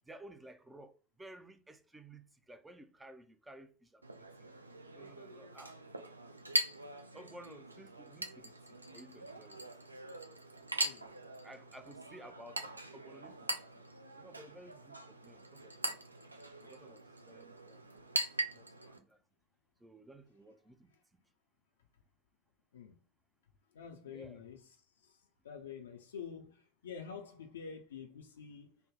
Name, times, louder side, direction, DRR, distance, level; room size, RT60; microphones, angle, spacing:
voice 1, 0.1-4.0 4.4-4.5 4.9-5.8 7.1-9.6 11.4-13.8 14.2-16.2 16.6-17.0 17.3-18.3 18.5-19.2 19.8-21.2 24.1-24.5, right 1 dB, 10° right, 0.4 m, -55 dB
Chink clink, 4.0-19.0, right 1 dB, 85° right, 0.3 m, -41 dB
voice 2, 23.7-24.6 25.0-25.1 25.4-28.8, left 6 dB, 70° left, 0.4 m, -47 dB
3.3 x 2.0 x 3.6 m
figure-of-eight pair, 80°, 0 cm